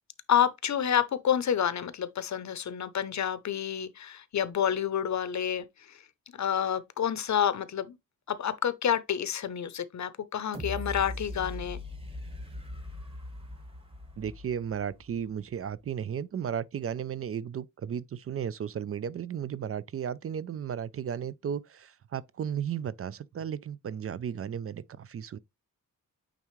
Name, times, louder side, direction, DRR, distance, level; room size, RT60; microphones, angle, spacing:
voice 1, 0.3-6.0 6.4-8.0 8.3-11.8, left 9 dB, 55° left, 0.7 m, -29 dB
sound 1, 10.5-15.4 15.9-16.0, left 1 dB, 15° right, 1.4 m, -40 dB
voice 2, 14.2-25.4, right 8 dB, 45° right, 0.4 m, -34 dB
9.0 x 3.6 x 3.1 m
wide cardioid pair, 165°, 33 cm